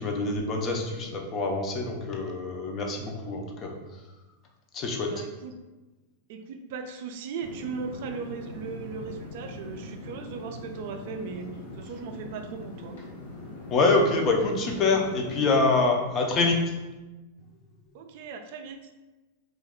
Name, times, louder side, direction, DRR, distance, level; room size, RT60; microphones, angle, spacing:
voice 1, 0.0-3.7 4.7-5.2 13.7-16.6, left 3 dB, 30° left, 2 dB, 0.5 m, -25 dB
voice 2, 5.0-5.5 6.3-11.5 11.8-13.0 17.9-18.8, right 5 dB, 60° right, 6 dB, 0.3 m, -37 dB
sound 1, 7.4-15.7, left 1 dB, 85° left, 1.2 m, -41 dB
2.4 x 2.2 x 3.5 m, 1.2 s
supercardioid pair, 135°, 0 cm